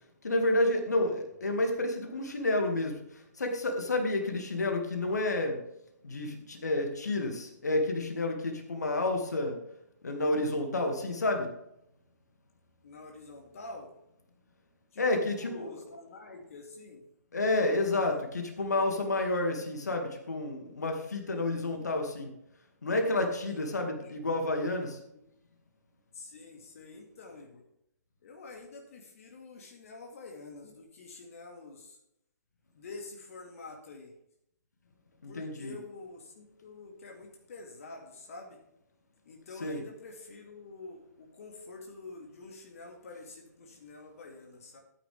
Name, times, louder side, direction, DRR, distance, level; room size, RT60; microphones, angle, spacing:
voice 1, 0.2-5.6 6.0-9.6 10.0-11.5 15.0-15.8 17.3-22.3 22.8-25.0 35.2-35.7 39.6-39.8, left 2 dB, 70° left, 4 dB, 2.2 m, -30 dB
voice 2, 12.8-13.9 14.9-17.0 17.9-18.3 21.5-21.9 23.5-24.4 25.1-25.2 26.1-27.6 28.2-32.0 32.7-34.1 35.3-38.6 39.3-44.8, left 3 dB, 55° left, 2 dB, 2.1 m, -47 dB
13.5 x 9.0 x 3.5 m, 0.77 s
figure-of-eight pair, 125°, 9 cm